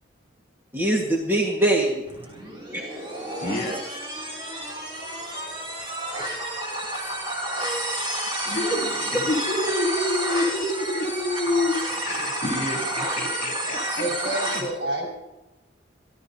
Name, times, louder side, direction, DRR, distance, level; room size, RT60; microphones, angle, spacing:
voice 1, 0.7-2.0 2.7-2.8 7.6-7.9 8.5-8.8, right 1 dB, 10° right, -2 dB, 1.5 m, -24 dB
sound 1, 2.1-14.6, right 1 dB, 25° right, 2.8 m, -30 dB
voice 2, 3.4-4.2 8.4-14.1 14.5-14.7, left 2 dB, 45° left, 0 dB, 3.2 m, -28 dB
voice 3, 14.0-15.2, right 1 dB, 70° right, -1 dB, 5.3 m, -29 dB
27.0 x 12.0 x 2.8 m, 1.0 s
head